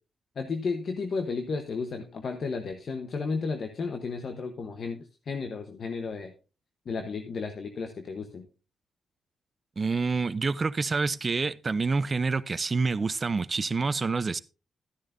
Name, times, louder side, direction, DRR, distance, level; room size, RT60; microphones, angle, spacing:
voice 1, 0.4-6.3 6.9-8.5, left 4 dB, 55° left, 1.0 m, -33 dB
voice 2, 9.8-14.4, right 4 dB, 35° right, 0.6 m, -27 dB
13.0 x 10.5 x 2.6 m
cardioid pair, 85°, 0 cm